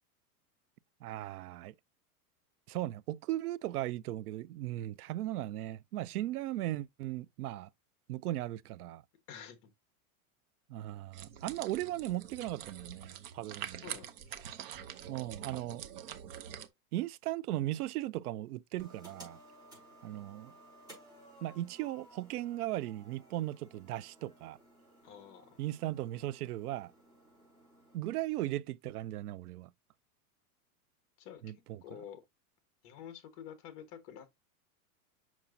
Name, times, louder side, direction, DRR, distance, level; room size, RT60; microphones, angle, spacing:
voice 1, 1.0-1.7 2.7-7.7 8.1-9.0 10.7-13.8 15.1-15.8 16.9-19.4 20.0-20.5 21.4-24.6 25.6-26.9 27.9-29.7 31.4-31.8, right 15 dB, 80° right, 0.6 m, -37 dB
voice 2, 9.3-9.7 13.8-14.4 25.0-25.6 31.2-32.2 32.8-34.5, left 9 dB, 30° left, 1.3 m, -49 dB
sound 1, 11.1-16.7, right 9 dB, 40° right, 0.7 m, -45 dB
sound 2, 18.8-28.0, right 1 dB, 10° right, 4.6 m, -58 dB
7.2 x 6.0 x 2.6 m
supercardioid pair, 170°, 45 cm